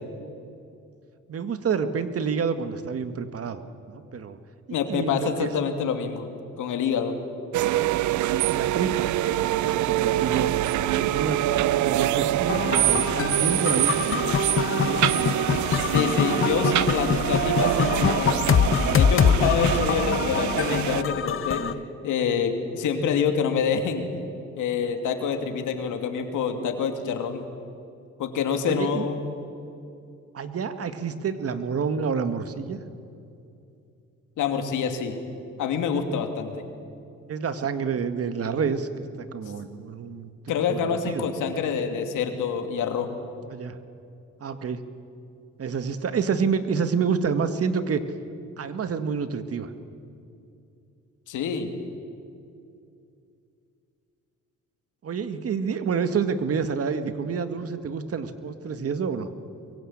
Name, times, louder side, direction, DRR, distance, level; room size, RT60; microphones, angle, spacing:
voice 1, 1.3-3.6 3.9-4.4 4.9-5.5 8.0-9.1 9.4-10.5 10.9-14.2 14.5-15.3 28.6-29.1 30.3-32.8 37.3-38.9 39.2-40.3 40.7-41.3 43.4-43.8 44.4-44.8 45.6-48.0 48.6-49.7 55.0-59.3, right 6 dB, 50° right, 10 dB, 1.8 m, -28 dB
voice 2, 4.7-6.3 6.6-7.2 15.7-18.5 18.9-21.6 22.0-24.1 24.6-27.4 28.2-29.2 34.4-35.2 35.6-36.6 40.5-43.1 51.3-51.7, left 6 dB, 85° left, 6 dB, 2.8 m, -26 dB
sound 1, 7.5-21.0, right 14 dB, 75° right, 0.7 m, -25 dB
sound 2, 12.5-21.7, left 7 dB, 45° left, 1.1 m, -24 dB
24.0 x 23.0 x 8.8 m, 2.6 s
cardioid pair, 90°, 30 cm